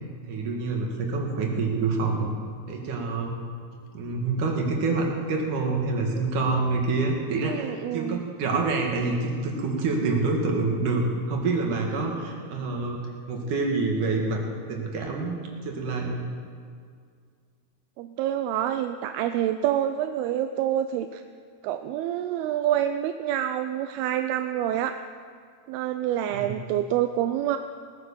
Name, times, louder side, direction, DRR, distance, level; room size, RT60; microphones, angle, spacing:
voice 1, 0.3-2.3 2.7-3.3 3.9-14.4 14.7-16.2 26.3-26.5, right 3 dB, 60° right, 1 dB, 2.9 m, -27 dB
voice 2, 7.4-8.2 18.0-21.2 21.6-25.0 25.7-27.6, right 11 dB, 85° right, 8 dB, 2.5 m, -27 dB
19.0 x 9.4 x 6.9 m, 2.1 s
omnidirectional pair, 4.5 m